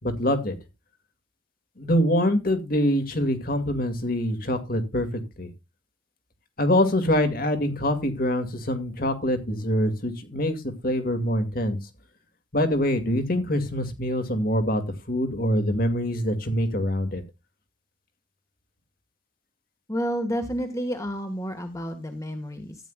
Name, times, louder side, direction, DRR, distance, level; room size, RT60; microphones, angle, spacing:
voice 1, 0.0-0.6 1.8-5.5 6.6-11.8 12.5-14.8 15.1-17.2, equal, 50° left, 8 dB, 2.2 m, -24 dB
voice 2, 19.9-22.8, equal, 15° left, 6 dB, 1.6 m, -30 dB
14.5 x 9.8 x 2.4 m, 0.24 s
head